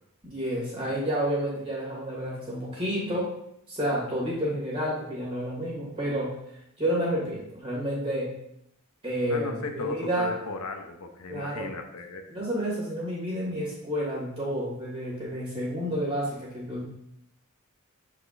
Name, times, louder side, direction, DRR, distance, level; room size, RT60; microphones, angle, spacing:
voice 1, 0.2-3.3 3.7-6.3 6.8-8.3 9.0-10.3 11.3-11.7 12.3-16.8, equal, 25° right, -5 dB, 2.4 m, -30 dB
voice 2, 9.2-12.2, left 3 dB, 85° left, 4 dB, 0.8 m, -35 dB
8.3 x 4.9 x 2.6 m, 0.77 s
head